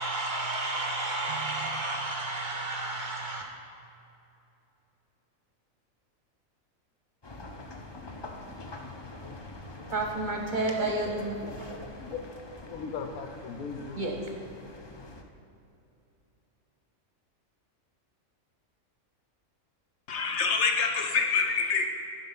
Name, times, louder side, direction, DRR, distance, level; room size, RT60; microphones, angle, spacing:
voice 1, 0.0-3.4 9.9-11.4 14.0-14.2, right 2 dB, 40° right, 0.8 m, -31 dB
sound 1, 7.2-15.2, left 2 dB, 35° left, 0.4 m, -45 dB
voice 2, 11.4-12.2 12.7-14.0, left 5 dB, 85° left, 1.3 m, -39 dB
voice 3, 20.1-21.9, left 5 dB, 60° left, 1.1 m, -26 dB
11.0 x 5.5 x 5.7 m
omnidirectional pair, 1.4 m